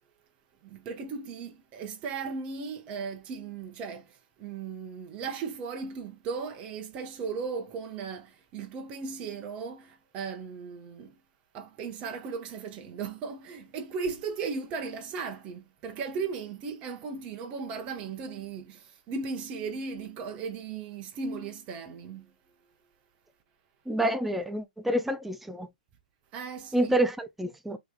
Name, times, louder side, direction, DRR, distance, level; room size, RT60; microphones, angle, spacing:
voice 1, 0.6-11.1 11.5-22.3 26.3-27.0, right 5 dB, 30° right, 1.0 m, -37 dB
voice 2, 23.9-25.7 26.7-27.8, right 1 dB, 5° right, 0.5 m, -28 dB
6.2 x 3.0 x 2.2 m
hypercardioid pair, 135°, 5 cm